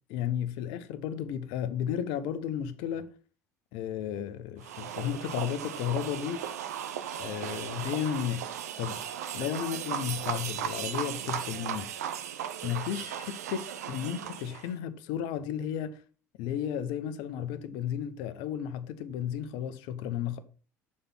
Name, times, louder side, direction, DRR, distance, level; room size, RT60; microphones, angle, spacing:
voice 1, 0.1-3.1 3.7-6.5 7.2-8.5 8.8-9.0 9.3-11.9 12.6-16.0 16.4-20.4, left 9 dB, 65° left, 0.9 m, -33 dB
sound 1, 4.6-14.7, right 9 dB, 80° right, 0.7 m, -36 dB
6.7 x 4.3 x 5.6 m
hypercardioid pair, 65°, 8 cm